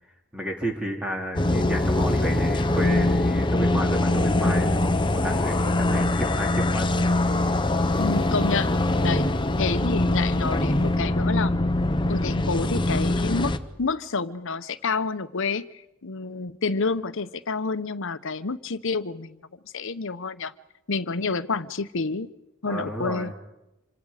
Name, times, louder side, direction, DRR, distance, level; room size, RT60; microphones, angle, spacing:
voice 1, 0.3-4.7 5.1-6.9 22.7-23.3, equal, 5° right, 1 dB, 2.6 m, -31 dB
sound 1, 1.4-13.6, left 1 dB, 25° left, 0.9 m, -23 dB
sound 2, 1.4-11.0, right 1 dB, 30° right, 5.2 m, -50 dB
voice 2, 8.0-8.7 9.0-9.3 9.6-11.5 12.1-19.4 19.7-20.5 20.9-22.3 22.6-23.3, left 4 dB, 65° left, 14 dB, 0.9 m, -29 dB
27.0 x 26.0 x 5.0 m, 0.91 s
head